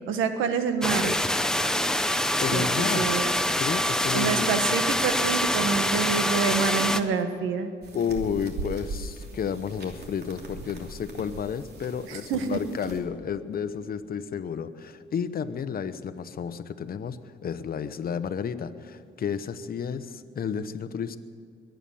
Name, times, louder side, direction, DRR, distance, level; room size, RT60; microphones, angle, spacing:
voice 1, 0.1-1.2 2.5-2.7 3.0-3.3 4.1-7.7 12.1-12.6, right 5 dB, 90° right, 8 dB, 1.4 m, -27 dB
sound 1, 0.8-7.0, left 1 dB, 5° left, 0.8 m, -25 dB
voice 2, 2.4-3.1 3.6-4.5 7.9-21.2, left 7 dB, 50° left, 11 dB, 1.0 m, -31 dB
sound 2, 7.8-13.0, right 2 dB, 55° right, 2.9 m, -40 dB
22.0 x 9.1 x 7.1 m, 2.4 s
cardioid pair, 90°, 20 cm